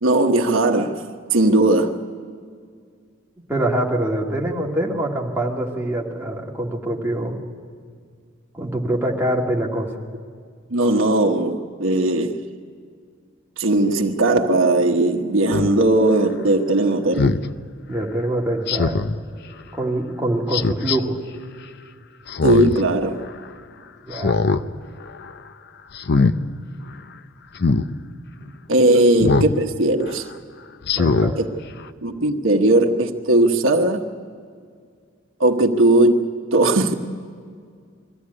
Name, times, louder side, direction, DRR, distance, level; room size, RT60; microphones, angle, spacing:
voice 1, 0.0-1.0 1.3-2.0 10.7-12.4 13.6-17.4 22.4-23.2 28.7-30.2 31.4-31.5 32.0-34.0 35.4-36.9, right 2 dB, 80° right, 1.2 m, -18 dB
voice 2, 3.5-7.4 8.5-9.9 17.9-19.0 19.7-21.2 24.1-24.4 28.4-28.5 31.0-31.4, right 1 dB, 10° right, 2.0 m, -24 dB
Speech synthesizer, 15.5-15.7 17.2-17.4 18.7-19.2 20.5-21.0 22.3-22.8 23.2-23.3 24.1-24.6 25.0-25.3 25.9-26.4 27.6-27.9 29.2-29.6 30.0-30.1 30.8-31.3 31.8-31.9, left 4 dB, 55° left, 0.6 m, -20 dB
22.0 x 15.0 x 9.7 m
head